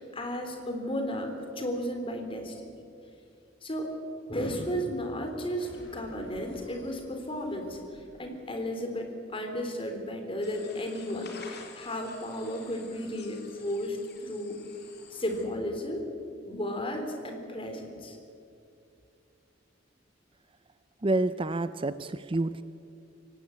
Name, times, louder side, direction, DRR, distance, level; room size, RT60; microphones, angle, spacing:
voice 1, 0.0-2.7 3.6-3.9 4.3-14.6 15.1-16.0 16.5-18.2, equal, 30° left, 4 dB, 3.4 m, -34 dB
sound 1, 5.6-9.0, equal, 80° left, 5.8 m, -54 dB
sound 2, 10.4-15.5, left 5 dB, 60° left, 3.1 m, -50 dB
voice 2, 21.0-22.6, right 2 dB, 30° right, 13 dB, 0.5 m, -28 dB
24.5 x 18.0 x 8.4 m, 2.5 s
head